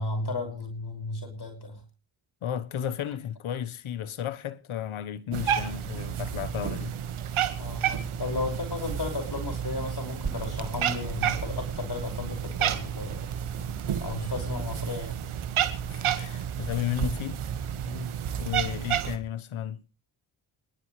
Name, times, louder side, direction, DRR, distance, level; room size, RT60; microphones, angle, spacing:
voice 1, 0.0-1.8 6.1-6.2 7.6-13.3 13.9-15.2 17.9-18.1, left 3 dB, 50° left, 5.8 m, -34 dB
voice 2, 2.4-6.9 15.9-17.4 18.4-19.8, left 9 dB, 80° left, 1.3 m, -33 dB
Cat, 5.3-19.2, right 9 dB, 85° right, 1.8 m, -31 dB
sound 1, 10.2-17.3, right 5 dB, 35° right, 1.8 m, -41 dB
28.0 x 11.5 x 3.3 m
cardioid pair, 50°, 48 cm